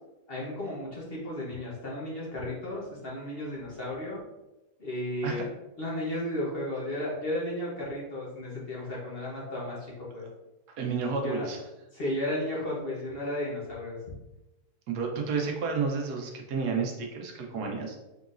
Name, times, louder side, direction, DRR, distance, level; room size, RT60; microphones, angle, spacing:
voice 1, 0.3-4.2 4.8-5.5 5.8-10.2 11.2-11.5 11.9-14.0, left 1 dB, 45° left, -5 dB, 1.0 m, -34 dB
voice 2, 10.7-11.6 14.9-18.0, right 5 dB, 80° right, 2 dB, 1.3 m, -31 dB
3.9 x 3.8 x 2.4 m, 0.99 s
omnidirectional pair, 1.7 m